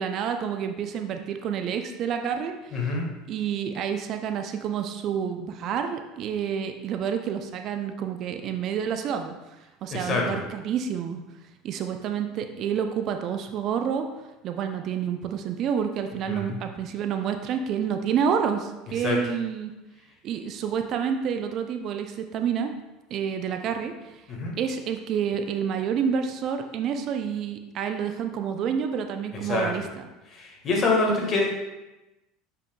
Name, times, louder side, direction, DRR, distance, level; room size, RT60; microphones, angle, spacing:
voice 1, 0.0-3.0 3.3-9.6 9.8-11.2 11.6-14.1 14.4-19.7 20.2-22.7 23.1-24.2 24.6-30.1, right 7 dB, 50° right, 6 dB, 0.5 m, -29 dB
voice 2, 2.7-3.0 9.9-10.4 16.3-16.4 19.0-19.2 24.3-24.5 29.5-29.7 30.3-31.6, left 3 dB, 40° left, 0 dB, 1.7 m, -25 dB
7.1 x 5.7 x 2.3 m, 1.0 s
hypercardioid pair, 70°, 0 cm